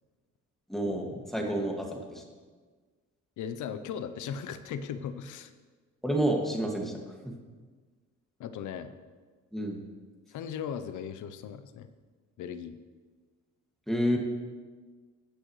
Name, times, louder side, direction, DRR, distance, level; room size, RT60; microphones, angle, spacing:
voice 1, 0.7-2.2 6.0-6.9 9.5-9.8 13.9-14.2, right 1 dB, ahead, 0 dB, 2.0 m, -29 dB
voice 2, 3.4-5.5 8.4-8.9 10.3-11.9 12.4-12.8, left 7 dB, 80° left, 11 dB, 0.7 m, -37 dB
18.0 x 6.3 x 3.2 m, 1.4 s
cardioid pair, 90°, 30 cm